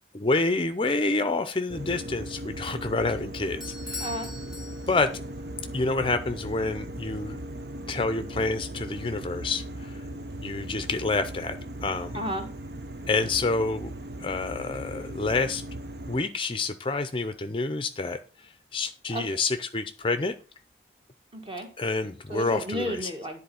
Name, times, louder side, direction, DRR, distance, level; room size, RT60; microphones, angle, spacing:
voice 1, 0.1-4.1 4.9-5.1 5.7-7.4 7.9-9.9 10.4-11.6 11.8-12.2 13.1-13.9 14.2-15.6 16.1-18.2 18.7-20.3 21.8-22.9, left 3 dB, 30° left, 10 dB, 0.5 m, -28 dB
sound 1, 1.7-16.2, right 1 dB, 65° right, 0.8 m, -38 dB
Bell / Doorbell, 3.6-5.3, left 2 dB, 5° right, 1.4 m, -40 dB
voice 2, 4.0-4.3 12.1-12.5 19.1-19.4 21.3-21.7 22.3-23.4, equal, 30° right, 4 dB, 1.8 m, -33 dB
10.5 x 4.1 x 6.9 m, 0.36 s
head